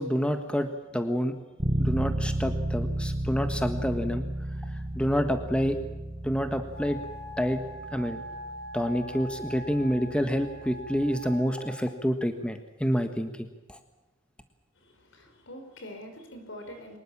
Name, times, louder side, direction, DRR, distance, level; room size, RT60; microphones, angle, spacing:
voice 1, 0.0-1.4 1.8-4.3 4.7-5.8 6.2-7.0 7.4-7.6 7.9-8.2 8.7-13.8, equal, 5° left, 7 dB, 1.4 m, -28 dB
Bass guitar, 1.6-11.3, right 1 dB, 30° right, 1.3 m, -33 dB
Wind instrument woodwind instrument, 6.7-11.9, equal, 50° left, 6.7 m, -42 dB
voice 2, 14.8-17.0, equal, 65° left, 6 dB, 5.3 m, -44 dB
24.0 x 20.5 x 7.3 m, 1.1 s
head